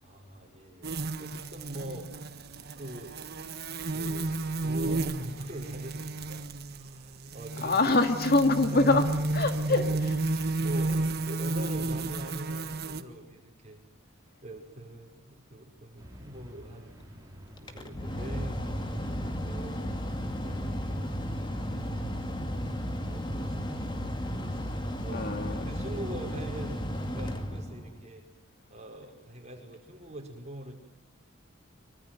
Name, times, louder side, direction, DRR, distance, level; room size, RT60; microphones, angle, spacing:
voice 1, 0.0-2.1 2.8-3.3 3.9-7.7 8.7-9.0 9.7-9.8 10.6-17.1 17.6-19.9 20.4-21.2 21.5-25.3 25.6-28.2 28.7-30.7, right 1 dB, 30° right, 2 dB, 5.3 m, -44 dB
sound 1, 0.8-13.0, right 2 dB, 50° right, 1.5 m, -32 dB
voice 2, 7.6-10.2 25.1-25.7, left 2 dB, 45° left, 7 dB, 2.1 m, -25 dB
sound 2, 16.0-26.0, equal, 15° right, 5.5 m, -50 dB
Mechanical fan, 17.6-28.1, equal, 20° left, 2.2 m, -34 dB
24.5 x 24.5 x 9.2 m, 0.80 s
head